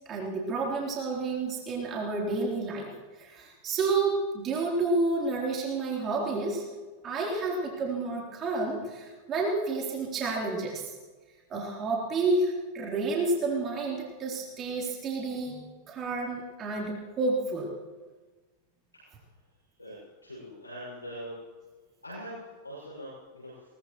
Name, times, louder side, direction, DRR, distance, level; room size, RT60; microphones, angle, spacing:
voice 1, 0.1-2.9 3.2-6.7 7.0-10.9 11.5-17.7, right 3 dB, 30° right, -2 dB, 3.5 m, -30 dB
voice 2, 19.8-21.3 22.0-23.7, equal, 85° left, -6 dB, 6.2 m, -42 dB
21.5 x 19.5 x 3.1 m, 1.3 s
figure-of-eight pair, 90°, 0 cm